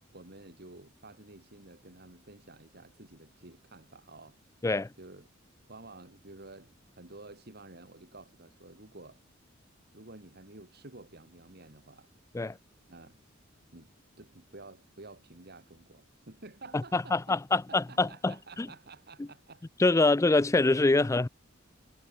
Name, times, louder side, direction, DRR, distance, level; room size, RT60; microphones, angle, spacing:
voice 1, 0.1-4.4 5.0-5.3 5.7-9.2 9.9-12.1 12.9-13.2 13.7-13.9 14.2-19.7 20.0-20.1 21.0-21.1, right 2 dB, 55° right, 3.2 m, -51 dB
voice 2, 16.9-18.7 19.8-21.3, left 3 dB, 15° left, 0.4 m, -25 dB
head